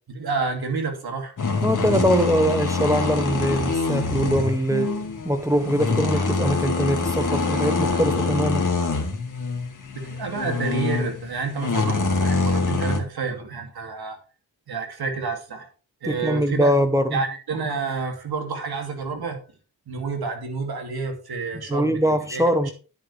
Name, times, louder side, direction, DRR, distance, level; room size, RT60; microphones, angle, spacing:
voice 1, 0.1-1.3 10.0-14.2 14.7-15.7 16.0-16.7 17.1-19.4 19.9-22.7, right 4 dB, 75° right, 2.7 m, -29 dB
sound 1, 1.4-13.0, left 4 dB, 55° left, 2.1 m, -25 dB
voice 2, 1.6-5.0 5.2-8.7 16.0-17.2 21.5-22.7, equal, 10° right, 1.0 m, -22 dB
10.0 x 9.2 x 3.4 m
cardioid pair, 70°, 38 cm